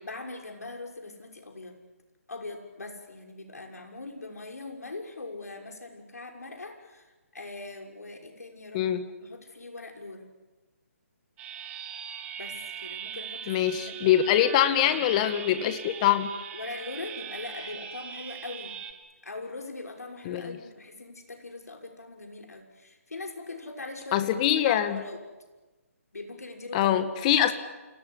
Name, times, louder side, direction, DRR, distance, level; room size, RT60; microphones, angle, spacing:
voice 1, 0.0-1.8 2.3-10.3 12.4-14.3 14.6-15.0 16.5-18.8 19.2-25.2 26.1-27.3, left 3 dB, 80° left, 2 dB, 6.0 m, -41 dB
sound 1, 11.4-18.9, right 8 dB, 15° right, 1.9 m, -40 dB
voice 2, 13.5-16.3 20.3-20.6 24.1-25.0 26.7-27.5, left 11 dB, 25° left, 10 dB, 1.9 m, -24 dB
28.5 x 18.0 x 10.0 m, 1.2 s
figure-of-eight pair, 150°, 8 cm